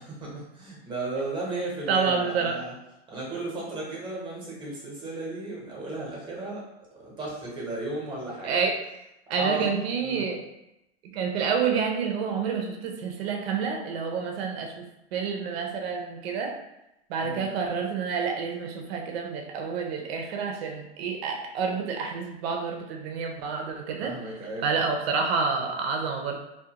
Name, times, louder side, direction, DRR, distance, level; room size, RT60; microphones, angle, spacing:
voice 1, 0.0-2.7 3.1-6.6 7.0-8.6 9.3-9.7 10.0-10.3 17.2-17.5 24.0-24.7, right 2 dB, 15° right, -4 dB, 0.9 m, -34 dB
voice 2, 1.9-2.6 8.4-8.8 9.3-10.4 11.0-16.5 17.1-24.1 24.6-26.4, right 5 dB, 65° right, 2 dB, 0.6 m, -28 dB
2.4 x 2.2 x 2.8 m, 0.88 s
supercardioid pair, 135°, 33 cm